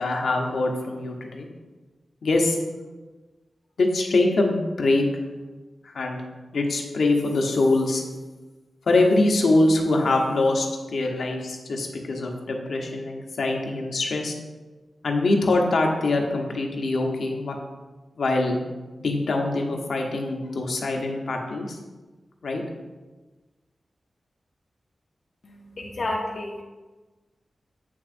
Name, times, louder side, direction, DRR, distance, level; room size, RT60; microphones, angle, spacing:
voice 1, 0.0-1.5 2.2-2.6 3.8-5.1 5.8-6.2 6.5-8.0 8.9-14.4 15.0-17.6 18.2-18.6 19.0-21.8 22.4-22.6, left 2 dB, 75° left, 1 dB, 0.9 m, -23 dB
voice 2, 25.4-26.6, left 2 dB, 50° left, -1 dB, 0.6 m, -31 dB
8.0 x 6.1 x 2.6 m, 1.2 s
wide cardioid pair, 160°, 0 cm